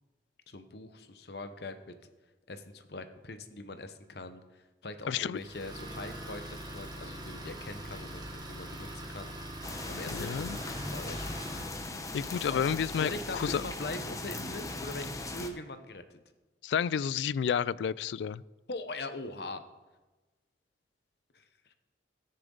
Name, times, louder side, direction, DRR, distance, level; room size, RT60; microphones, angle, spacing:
voice 1, 0.5-2.0 2.5-4.4 4.8-9.3 9.9-11.4 12.5-12.6 13.0-16.0 18.7-19.6 21.3-21.7, left 2 dB, 65° left, 9 dB, 0.9 m, -42 dB
voice 2, 5.1-5.4 10.1-10.6 12.1-13.6 16.6-18.4, left 7 dB, 80° left, 21 dB, 0.3 m, -30 dB
Idling, 5.4-11.9, right 1 dB, 25° right, 1.4 m, -43 dB
sound 1, 9.6-15.5, left 2 dB, 20° left, 0.8 m, -39 dB
17.0 x 6.8 x 3.9 m, 1.2 s
head